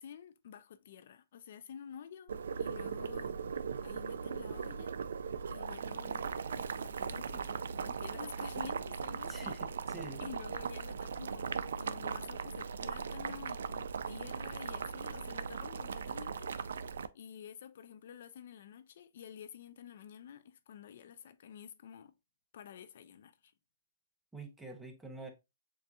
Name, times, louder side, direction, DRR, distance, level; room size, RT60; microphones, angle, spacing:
voice 1, 0.0-2.3 2.6-3.4 3.8-5.0 5.5-9.6 10.2-22.1 22.5-23.5, left 8 dB, 60° left, 0.4 m, -50 dB
Boiling, 2.3-17.1, right 6 dB, 85° right, 0.3 m, -39 dB
voice 2, 9.3-10.2 24.3-25.3, right 2 dB, 5° right, 0.7 m, -47 dB
6.8 x 2.6 x 2.3 m
hypercardioid pair, 155°, 0 cm